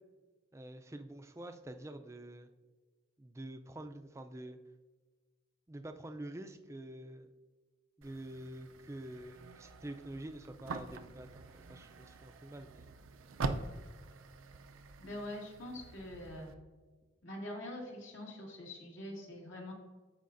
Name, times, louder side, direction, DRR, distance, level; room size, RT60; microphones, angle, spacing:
voice 1, 0.5-2.5 3.2-4.6 5.7-7.3 8.0-12.9, right 1 dB, 15° right, 7 dB, 0.4 m, -47 dB
sound 1, 8.0-16.5, right 3 dB, 85° right, 0.5 m, -44 dB
voice 2, 15.0-16.5 17.2-19.7, left 1 dB, 75° left, -2 dB, 2.0 m, -44 dB
13.5 x 4.8 x 2.6 m, 1.3 s
head